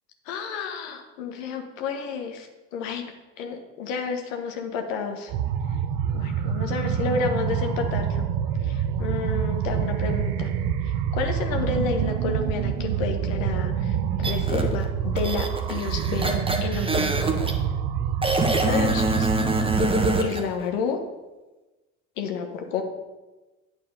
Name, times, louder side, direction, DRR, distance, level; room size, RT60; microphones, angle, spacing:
voice 1, 0.3-5.3 6.1-8.3 8.6-10.5 11.1-17.2 18.6-19.3 19.7-19.8 20.2-21.0 22.2-22.8, left 5 dB, 75° left, 4 dB, 1.1 m, -30 dB
sound 1, 5.3-20.3, right 8 dB, 60° right, 0.7 m, -26 dB
sound 2, 14.2-14.6 15.2-17.5 18.2-20.4, right 1 dB, 15° right, 1.2 m, -25 dB
8.7 x 4.8 x 5.3 m, 1.1 s
hypercardioid pair, 60°, 40 cm